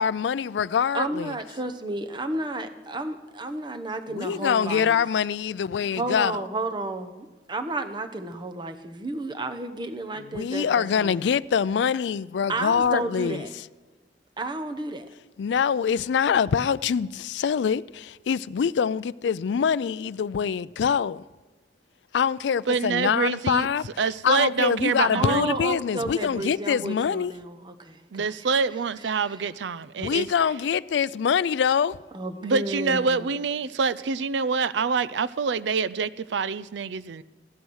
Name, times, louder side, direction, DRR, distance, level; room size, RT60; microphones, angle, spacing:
voice 1, 0.0-1.3 4.2-6.4 10.3-13.4 15.4-21.2 22.1-23.9 24.2-27.3 30.0-32.0, left 7 dB, 80° left, 0.4 m, -24 dB
voice 2, 0.9-5.0 6.0-11.2 12.5-13.5 14.4-15.1 25.1-28.3 29.3-29.4 32.1-33.2, right 2 dB, 25° right, 1.0 m, -32 dB
voice 3, 22.7-23.7 24.0-25.5 28.1-30.3 32.4-37.2, right 5 dB, 85° right, 0.5 m, -26 dB
15.5 x 11.0 x 6.3 m
head